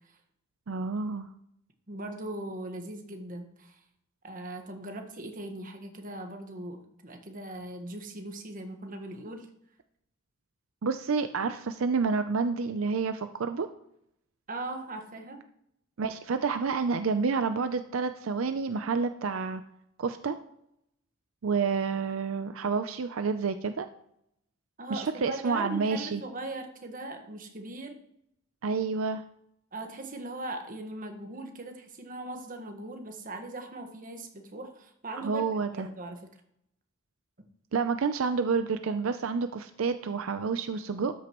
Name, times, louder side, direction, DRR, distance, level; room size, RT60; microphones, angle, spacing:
voice 1, 0.7-1.3 10.8-13.7 16.0-19.6 20.0-20.4 21.4-23.9 24.9-26.2 28.6-29.2 35.2-35.9 37.7-41.1, right 5 dB, 85° right, 9 dB, 0.5 m, -29 dB
voice 2, 1.9-3.8 4.2-9.5 14.5-15.4 24.8-28.0 29.7-35.4 35.7-36.3, right 2 dB, 45° right, 4 dB, 1.4 m, -39 dB
13.0 x 9.2 x 3.0 m, 0.76 s
head